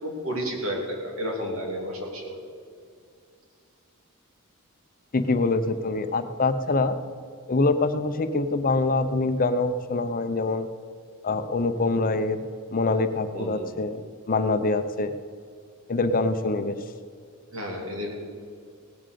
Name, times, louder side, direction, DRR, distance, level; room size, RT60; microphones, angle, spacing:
voice 1, 0.0-2.4 13.3-13.7 17.5-18.1, equal, 70° right, 0 dB, 3.0 m, -31 dB
voice 2, 5.1-7.0 7.5-10.7 11.2-12.4 12.7-14.0 14.3-15.1 15.9-16.8, left 3 dB, 40° left, 10 dB, 0.7 m, -24 dB
17.5 x 7.5 x 6.8 m, 2.3 s
head